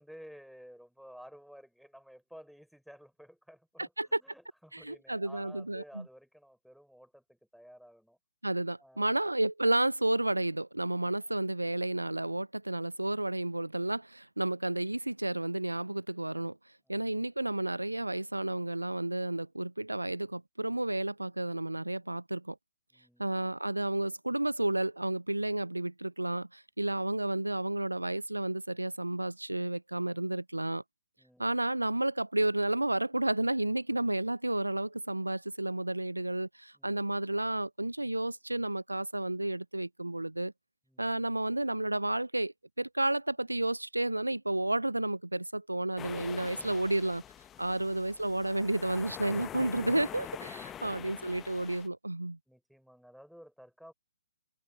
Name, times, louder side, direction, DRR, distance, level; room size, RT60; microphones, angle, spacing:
voice 1, 0.0-8.2 8.8-9.3 11.0-11.3 16.8-17.1 22.9-23.4 31.2-31.6 36.7-37.2 40.8-41.2 46.4-47.2 50.4-51.0 52.5-53.9, equal, ahead, 4.4 m, -54 dB
voice 2, 4.7-5.8 8.4-16.6 16.9-22.6 23.2-30.8 31.4-40.5 41.0-47.2 47.6-52.4, right 1 dB, 85° right, 0.6 m, -31 dB
sound 1, 46.0-51.9, left 11 dB, 15° left, 1.2 m, -45 dB
figure-of-eight pair, 130°, 0 cm